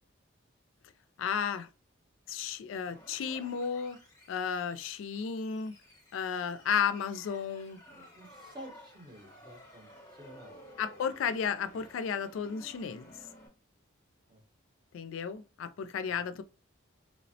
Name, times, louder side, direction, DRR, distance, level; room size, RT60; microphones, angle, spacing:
voice 1, 1.2-1.7 2.3-4.0 4.3-5.7 6.1-7.8 10.8-13.1 14.9-16.4, left 7 dB, 80° left, 0.3 m, -33 dB
sound 1, 2.8-13.5, left 1 dB, 20° left, 0.8 m, -55 dB
voice 2, 7.9-10.8 14.3-14.4 16.1-16.2, equal, 20° right, 0.7 m, -51 dB
3.1 x 2.0 x 2.6 m
head